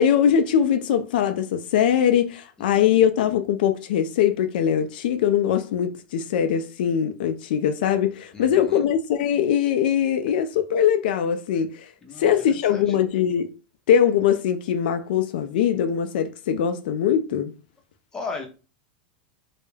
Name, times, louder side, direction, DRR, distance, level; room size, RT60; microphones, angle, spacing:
voice 1, 0.0-11.9 12.2-13.5 13.9-17.5, left 9 dB, 75° left, 0.3 m, -21 dB
voice 2, 2.6-3.0 8.3-8.9 12.0-13.0 18.1-18.5, left 4 dB, 10° left, 0.6 m, -37 dB
2.2 x 2.0 x 3.1 m
supercardioid pair, 145°, 5 cm